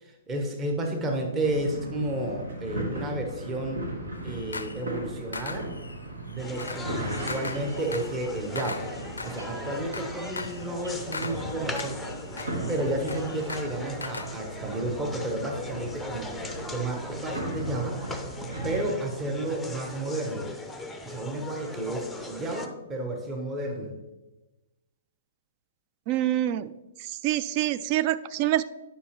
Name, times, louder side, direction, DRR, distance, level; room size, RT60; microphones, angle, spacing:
voice 1, 0.0-3.8 4.2-5.7 6.3-8.8 9.2-12.2 12.7-16.3 16.7-18.0 18.6-20.5 21.0-23.9, right 1 dB, 20° right, 3 dB, 1.1 m, -32 dB
sound 1, 1.4-18.8, right 1 dB, 75° right, 1.5 m, -37 dB
sound 2, 4.1-4.9 5.3-14.3, left 3 dB, 80° left, 0.4 m, -40 dB
sound 3, 6.4-22.7, left 2 dB, 5° left, 0.6 m, -40 dB
voice 2, 26.1-26.7 27.0-28.6, right 13 dB, 35° right, 15 dB, 0.3 m, -26 dB
9.8 x 5.6 x 3.1 m, 1.0 s
figure-of-eight pair, 115°, 0 cm